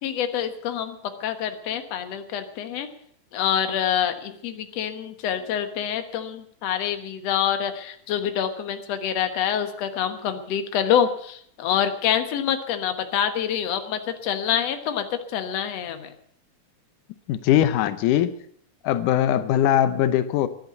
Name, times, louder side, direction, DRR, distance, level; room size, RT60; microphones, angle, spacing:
voice 1, 0.0-2.9 3.3-16.1, left 9 dB, 60° left, 7 dB, 2.3 m, -26 dB
voice 2, 17.3-18.4 18.8-20.5, left 11 dB, 90° left, 12 dB, 2.3 m, -21 dB
14.5 x 11.0 x 8.2 m, 0.64 s
omnidirectional pair, 3.5 m